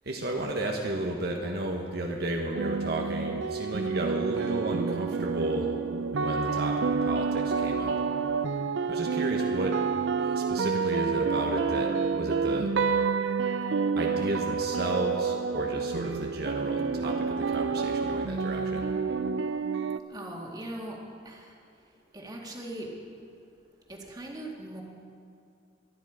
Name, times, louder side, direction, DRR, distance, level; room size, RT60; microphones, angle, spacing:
voice 1, 0.0-8.0 8.9-12.7 14.0-18.8, right 1 dB, 60° right, 0 dB, 1.2 m, -33 dB
sound 1, 2.5-20.0, right 5 dB, 90° right, 0.5 m, -28 dB
voice 2, 20.1-21.0 21.3-21.5 22.1-22.9 23.9-24.8, right 1 dB, 20° right, -1 dB, 2.1 m, -40 dB
22.5 x 10.0 x 5.0 m, 2.4 s
head